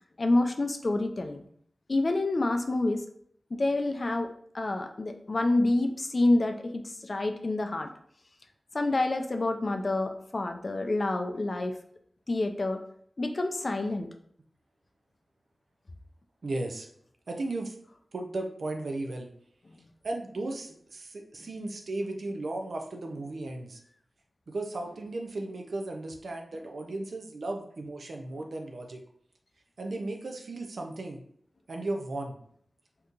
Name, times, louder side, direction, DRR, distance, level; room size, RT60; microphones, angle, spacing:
voice 1, 0.2-1.4 1.9-3.0 3.5-7.9 8.7-11.8 12.3-12.8 13.2-14.1 19.7-19.8, left 2 dB, 45° left, 6 dB, 0.3 m, -28 dB
voice 2, 16.4-16.9 17.3-17.7 18.1-19.3 20.0-23.8 24.5-29.0 29.8-31.2 31.7-32.4, right 2 dB, 75° right, 3 dB, 0.5 m, -35 dB
3.6 x 2.8 x 2.4 m, 0.64 s
wide cardioid pair, 95°, 0 cm